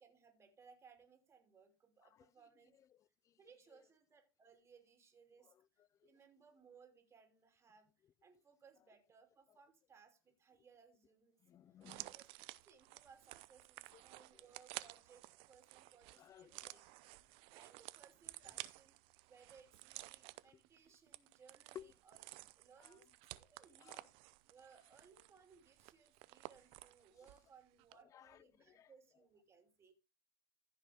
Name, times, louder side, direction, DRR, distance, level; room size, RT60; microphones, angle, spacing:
voice 1, 0.0-2.8 3.4-5.5 6.0-7.9 8.2-11.4 11.9-12.3 12.6-16.8 17.5-18.9 19.3-24.1 24.5-29.9, right 6 dB, 20° right, 2.9 m, -65 dB
voice 2, 2.9-3.4 3.7-3.8 5.4-6.1 11.4-12.1 13.9-14.4 16.2-16.8 18.4-18.5 21.7-21.9 22.8-23.0 23.8-24.1 28.1-28.9, left 10 dB, 30° left, 0.5 m, -59 dB
sound 1, 11.8-27.5 27.8-27.9, right 20 dB, 50° right, 0.7 m, -54 dB
14.5 x 6.1 x 3.5 m
hypercardioid pair, 105°, 12 cm